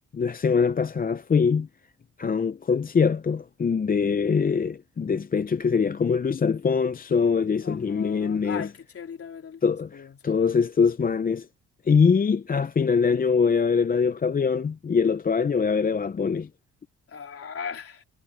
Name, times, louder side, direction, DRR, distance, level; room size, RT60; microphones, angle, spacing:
voice 1, 0.1-1.7 2.2-8.7 9.6-11.5 11.9-16.5, left 5 dB, 30° left, 0.7 m, -23 dB
voice 2, 7.6-10.4 17.1-18.0, left 6 dB, 50° left, 3.7 m, -39 dB
cardioid pair, 90°, 30 cm